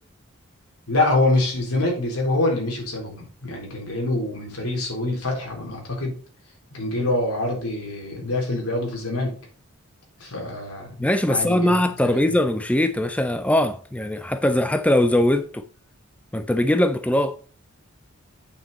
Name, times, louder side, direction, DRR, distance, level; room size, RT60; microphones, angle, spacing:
voice 1, 0.9-6.2 6.7-9.3 10.2-11.8 12.0-12.2, left 2 dB, 90° left, 3.7 m, -25 dB
voice 2, 11.0-15.7 16.3-17.4, left 1 dB, 5° left, 0.4 m, -21 dB
8.6 x 6.2 x 4.1 m
head